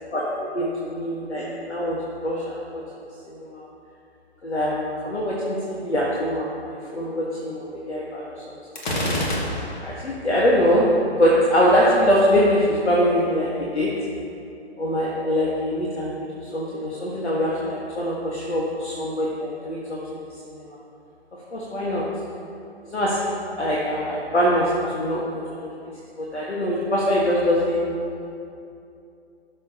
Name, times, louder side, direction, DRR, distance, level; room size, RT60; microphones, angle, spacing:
voice 1, 0.5-2.0 2.2-2.6 3.3-3.7 4.4-8.6 8.9-9.1 9.8-10.8 11.2-13.9 14.8-16.1 16.5-20.2 20.5-20.6 21.5-22.0 22.9-23.3 23.6-25.7 26.2-27.9, equal, 80° left, -5 dB, 1.6 m, -23 dB
Gunshot gunfire, 8.8-10.0, left 1 dB, 45° left, 1.7 m, -26 dB
16.5 x 6.4 x 2.9 m, 2.6 s
figure-of-eight pair, 130°, 33 cm